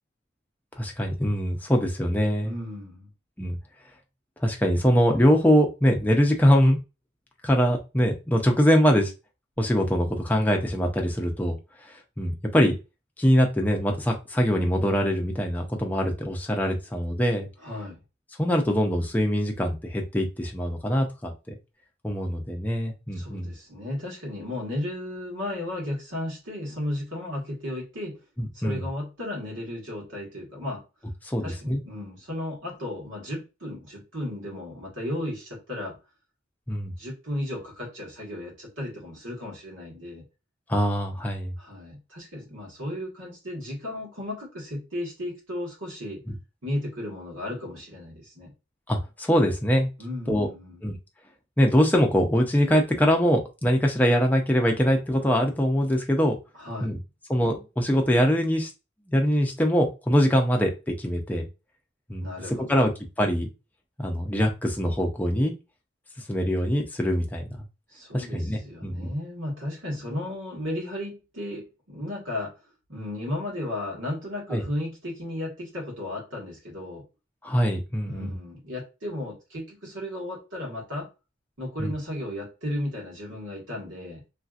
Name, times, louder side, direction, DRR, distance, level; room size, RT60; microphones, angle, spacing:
voice 1, 0.8-2.5 3.4-3.6 4.4-6.8 7.4-9.1 9.6-11.6 11.9-12.7 13.2-17.5 18.4-21.6 22.0-23.5 28.4-28.8 31.2-31.8 36.7-36.9 40.7-41.5 48.9-49.9 50.3-50.5 50.8-51.0 51.6-56.4 56.8-57.0 57.3-58.7 59.1-60.7 61.0-61.5 62.1-62.3 62.7-62.9 63.2-63.5 64.0-65.5 66.3-67.4 68.1-69.1 74.5-74.6 77.4-78.3 81.8-81.9, equal, 10° left, 0.5 m, -23 dB
voice 2, 2.4-3.1 17.6-18.0 23.1-28.2 28.5-30.8 31.4-35.9 37.0-40.2 41.6-46.2 46.6-48.5 50.0-50.8 56.5-56.9 62.2-62.8 67.9-72.6 72.9-77.0 78.0-81.1 81.6-84.2, left 1 dB, 85° right, 1.6 m, -34 dB
3.2 x 2.7 x 2.4 m
head